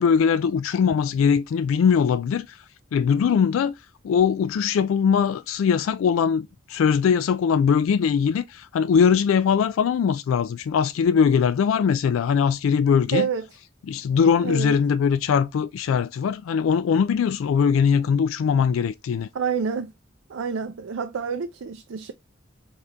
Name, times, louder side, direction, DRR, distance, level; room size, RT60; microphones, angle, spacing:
voice 1, 0.0-2.6 2.9-3.7 4.0-13.3 13.9-19.3, left 6 dB, 85° left, 0.3 m, -21 dB
voice 2, 13.1-13.5 14.4-14.7 19.3-19.9 20.3-22.1, right 6 dB, 80° right, 0.4 m, -28 dB
4.1 x 3.7 x 3.3 m
head